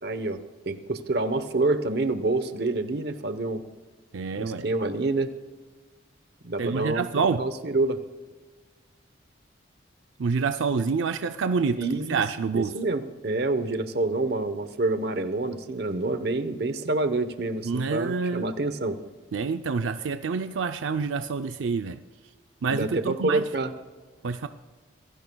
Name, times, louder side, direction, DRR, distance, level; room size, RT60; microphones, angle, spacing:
voice 1, 0.0-3.6 4.3-5.3 6.4-8.0 11.8-12.2 12.5-19.0 22.7-23.7, right 2 dB, 55° right, 10 dB, 0.9 m, -27 dB
voice 2, 4.1-4.7 6.6-7.4 10.2-11.8 12.1-12.7 17.6-18.5 19.3-22.0 22.6-23.4 24.2-24.5, right 5 dB, 85° right, 8 dB, 0.5 m, -27 dB
26.0 x 16.5 x 2.3 m, 1.4 s
head